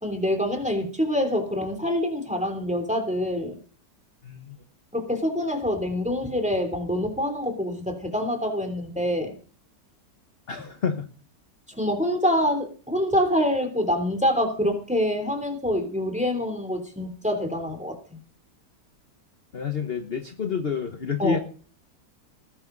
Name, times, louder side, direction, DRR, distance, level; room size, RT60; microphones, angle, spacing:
voice 1, 0.0-3.6 4.9-9.3 11.8-18.2 21.2-21.4, equal, 5° right, 6 dB, 3.1 m, -26 dB
voice 2, 4.2-4.6 10.5-11.1 19.5-21.4, left 6 dB, 40° left, 7 dB, 1.2 m, -28 dB
19.5 x 11.5 x 4.0 m, 0.40 s
omnidirectional pair, 1.9 m